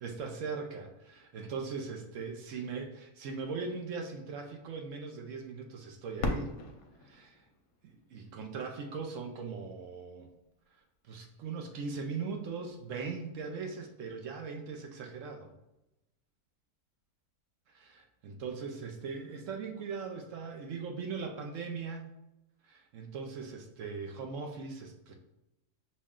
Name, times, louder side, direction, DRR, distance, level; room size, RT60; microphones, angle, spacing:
voice 1, 0.0-6.6 7.0-7.4 7.8-10.3 10.7-15.5 17.7-22.1 22.6-25.2, right 5 dB, 65° right, 3 dB, 0.8 m, -40 dB
Fireworks, 6.2-8.9 9.6-9.7 10.4-10.9 12.8-12.9, left 2 dB, 75° left, 1.1 m, -39 dB
6.2 x 2.1 x 3.6 m, 0.92 s
omnidirectional pair, 1.6 m